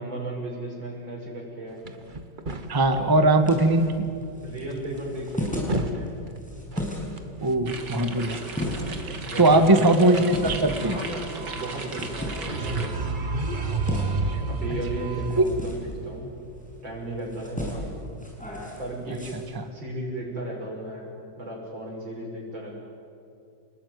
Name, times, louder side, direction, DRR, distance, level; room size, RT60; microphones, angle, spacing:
voice 1, 0.0-1.8 3.0-3.3 4.4-6.1 9.2-9.8 10.8-12.9 14.5-16.3 16.8-17.8 18.8-19.3 19.7-21.1 21.4-22.7, right 1 dB, 80° right, -1 dB, 6.6 m, -35 dB
sound 1, 1.9-3.0 3.7-3.9 4.2-4.3 4.7-4.8 5.2-6.0 6.3-6.4 6.7-7.2 8.3-9.1 9.4-15.4, right 3 dB, 30° right, 1.3 m, -31 dB
sound 2, 2.5-19.4, equal, 5° left, 6.6 m, -37 dB
voice 2, 2.7-3.9 7.4-8.4 9.1-11.0, right 2 dB, 15° right, 7 dB, 1.4 m, -20 dB
sound 3, 7.7-12.9, right 4 dB, 60° right, 2.9 m, -37 dB
28.5 x 20.0 x 9.6 m, 2.5 s
omnidirectional pair, 2.1 m